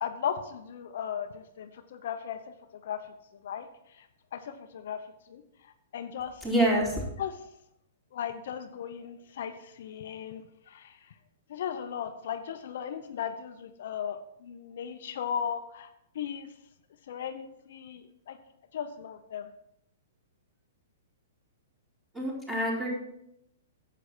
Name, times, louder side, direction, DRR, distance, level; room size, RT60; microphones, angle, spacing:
voice 1, 0.0-2.4 2.8-3.0 3.4-4.1 4.3-5.0 5.3-6.4 7.2-7.4 8.1-11.0 11.5-16.5 17.1-18.4 18.7-19.5, left 8 dB, 65° left, 8 dB, 0.7 m, -37 dB
voice 2, 6.4-7.0 22.1-22.9, right 1 dB, 10° right, -5 dB, 4.3 m, -26 dB
9.5 x 7.8 x 4.4 m, 0.79 s
hypercardioid pair, 120°, 0 cm